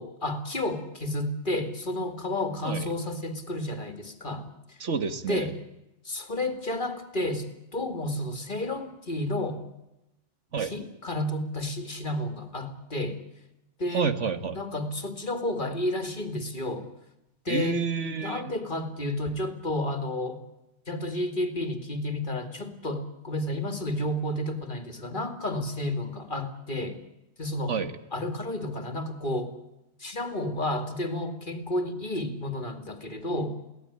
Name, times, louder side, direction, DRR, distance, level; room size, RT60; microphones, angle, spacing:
voice 1, 0.0-4.8 5.3-5.5 6.0-9.6 10.6-13.2 13.8-14.1 14.5-16.9 17.4-17.8 18.2-20.4 20.9-27.0 27.4-27.8 28.1-29.5 30.0-33.7, left 1 dB, 45° left, 8 dB, 2.6 m, -31 dB
voice 2, 4.8-5.5 10.5-10.7 13.9-14.6 17.5-18.5 27.7-27.9, right 6 dB, 85° right, 10 dB, 1.9 m, -29 dB
23.5 x 17.5 x 10.0 m, 0.92 s
omnidirectional pair, 1.2 m